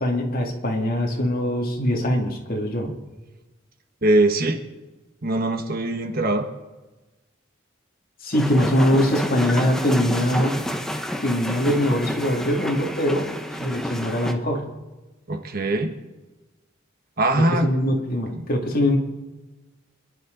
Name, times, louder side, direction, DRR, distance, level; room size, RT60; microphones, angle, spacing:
voice 1, 0.0-2.9 8.2-10.6 11.2-13.3 13.6-14.7 17.3-19.0, left 1 dB, 45° left, 1 dB, 2.3 m, -22 dB
voice 2, 4.0-4.6 5.2-6.5 15.3-15.9 17.2-17.7, right 2 dB, 50° right, 6 dB, 1.3 m, -21 dB
sound 1, 8.3-14.3, equal, 5° left, 0.9 m, -29 dB
26.5 x 11.0 x 3.9 m, 1.2 s
head